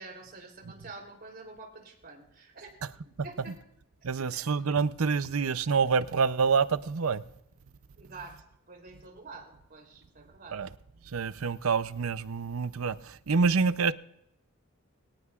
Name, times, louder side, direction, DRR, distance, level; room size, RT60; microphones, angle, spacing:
voice 1, 0.0-2.8 3.2-3.5 4.1-4.4 8.0-10.6, right 3 dB, 45° right, 3.4 m, -47 dB
voice 2, 4.0-7.2 10.5-10.7 11.1-13.9, right 5 dB, 75° right, 0.6 m, -27 dB
24.0 x 18.0 x 2.5 m
head